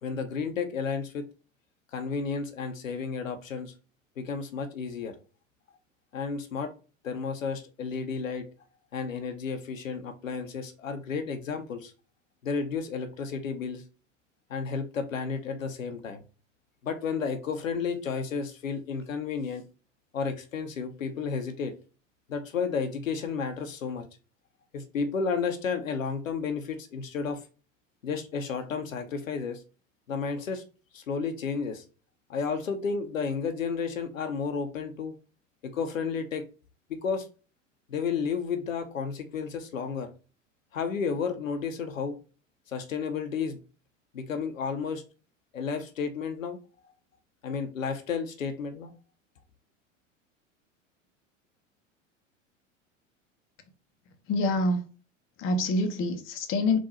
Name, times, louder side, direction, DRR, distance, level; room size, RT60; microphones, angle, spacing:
voice 1, 0.0-1.3 1.9-3.7 4.2-5.1 6.1-6.7 7.0-8.5 8.9-11.9 12.4-13.8 14.5-16.2 16.8-19.6 20.1-21.7 22.3-24.1 24.7-27.4 28.0-29.6 30.1-30.6 30.9-31.8 32.3-35.1 35.6-36.5 36.9-37.3 37.9-40.1 40.7-42.2 42.7-43.6 44.1-45.0 45.5-46.6 47.4-48.9, left 5 dB, 85° left, 0.8 m, -32 dB
voice 2, 54.3-54.8 55.4-56.8, left 2 dB, 35° left, 0.8 m, -26 dB
3.7 x 2.5 x 4.2 m
hypercardioid pair, 85°, 38 cm